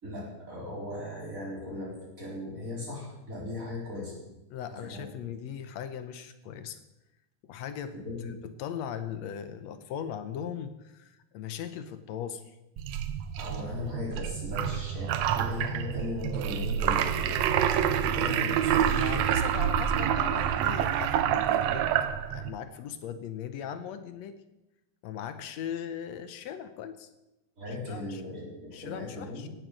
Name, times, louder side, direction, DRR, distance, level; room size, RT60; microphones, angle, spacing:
voice 1, 0.0-4.2 4.9-5.3 8.0-8.3 13.4-19.3 27.6-29.5, left 2 dB, 25° right, -3 dB, 4.0 m, -38 dB
voice 2, 4.5-6.8 7.4-7.9 8.2-12.6 19.0-21.9 22.3-24.4 25.0-27.1 27.7-28.2 28.7-29.5, left 9 dB, 70° left, 11 dB, 2.0 m, -39 dB
sound 1, 12.8-22.5, right 9 dB, 75° right, 2.0 m, -27 dB
17.0 x 7.9 x 7.5 m, 0.97 s
omnidirectional pair, 3.3 m